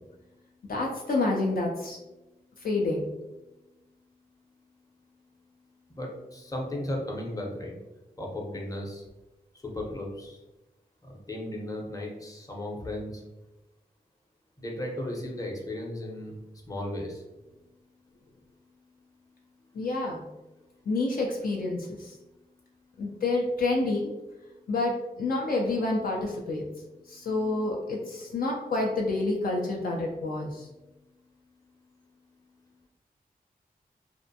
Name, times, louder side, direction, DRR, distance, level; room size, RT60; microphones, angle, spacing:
voice 1, 0.7-2.0 2.6-3.0 19.7-20.2 20.9-22.1 23.0-24.1 24.7-26.6 27.1-30.7, left 2 dB, 65° left, -1 dB, 0.4 m, -28 dB
voice 2, 5.9-7.8 8.2-9.0 9.6-10.4 11.0-13.2 14.6-16.4 16.7-17.2, left 1 dB, 20° left, -1 dB, 0.7 m, -35 dB
2.5 x 2.1 x 2.6 m, 1.0 s
cardioid pair, 45°, 16 cm